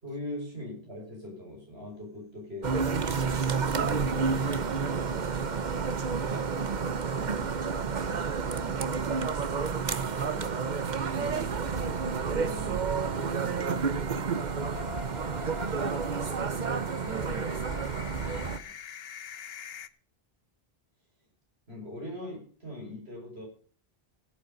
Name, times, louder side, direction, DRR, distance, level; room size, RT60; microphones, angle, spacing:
voice 1, 0.0-2.8 3.7-5.4 21.7-23.5, left 1 dB, 90° right, -1 dB, 6.0 m, -41 dB
sound 1, 2.6-18.6, right 5 dB, 50° right, 1.0 m, -30 dB
voice 2, 6.2-12.9 13.3-15.9 16.7-18.8, right 2 dB, 15° right, 7 dB, 1.6 m, -47 dB
sound 2, 12.3-19.9, left 8 dB, 70° left, 1.0 m, -46 dB
16.0 x 8.3 x 5.2 m, 0.42 s
omnidirectional pair, 1.0 m